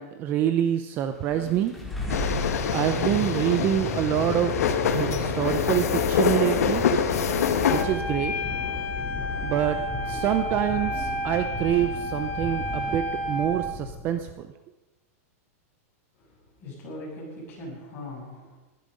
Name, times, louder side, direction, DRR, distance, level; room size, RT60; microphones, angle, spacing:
voice 1, 0.0-1.7 2.7-4.5 4.9-6.8 7.7-8.3 9.4-9.8 10.1-14.5, right 11 dB, 25° right, 9 dB, 0.6 m, -26 dB
sound 1, 1.1-14.2, left 1 dB, ahead, 2.2 m, -34 dB
sound 2, 2.1-7.8, left 7 dB, 90° left, 1.7 m, -25 dB
Wind instrument woodwind instrument, 7.7-13.6, left 1 dB, 55° left, 3.1 m, -31 dB
voice 2, 16.6-18.6, left 1 dB, 25° left, -5 dB, 7.3 m, -40 dB
19.0 x 12.0 x 5.3 m, 1.1 s
supercardioid pair, 170°, 8 cm